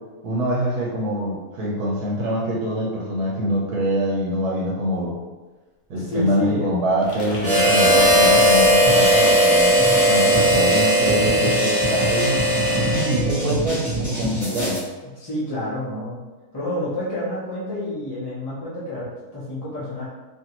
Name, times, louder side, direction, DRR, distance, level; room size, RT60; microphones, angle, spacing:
voice 1, 0.2-5.2 5.9-9.8 10.1-14.8, equal, 80° right, -5 dB, 1.2 m, -24 dB
voice 2, 5.9-6.7 15.1-16.2 16.5-20.0, left 1 dB, 30° left, -10 dB, 0.4 m, -29 dB
sound 1, 7.0-11.0, left 1 dB, 60° left, 1.0 m, -33 dB
Harmonica, 7.4-13.4, equal, 45° right, 1.1 m, -17 dB
sound 2, 8.9-14.8, right 1 dB, 10° right, 1.2 m, -27 dB
2.9 x 2.6 x 2.9 m, 1.2 s
omnidirectional pair, 1.6 m